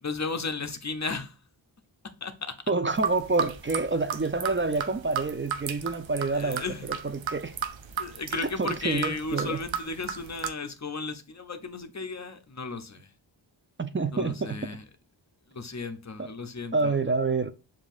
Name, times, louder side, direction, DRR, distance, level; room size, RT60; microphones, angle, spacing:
voice 1, 0.0-1.3 2.2-2.5 6.3-6.9 8.0-13.1 14.1-14.8 15.5-16.9, left 3 dB, 40° left, 0.7 m, -34 dB
voice 2, 2.7-7.5 8.4-9.6 13.8-14.6 16.2-16.3 16.7-17.5, right 3 dB, 25° right, 0.5 m, -28 dB
sound 1, 2.9-10.5, right 7 dB, 85° right, 0.6 m, -34 dB
7.3 x 2.7 x 2.5 m
wide cardioid pair, 65°, 45 cm